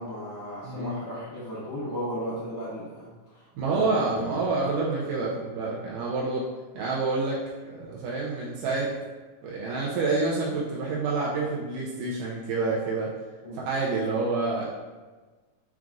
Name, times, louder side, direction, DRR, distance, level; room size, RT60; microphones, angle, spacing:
voice 1, 0.0-4.4 13.4-13.6, equal, 75° left, -14 dB, 0.9 m, -36 dB
voice 2, 0.6-0.9 3.6-6.5 6.7-8.9 9.4-13.1 13.5-14.6, right 3 dB, 80° right, -5 dB, 2.1 m, -28 dB
5.9 x 2.4 x 2.5 m, 1.3 s
omnidirectional pair, 3.9 m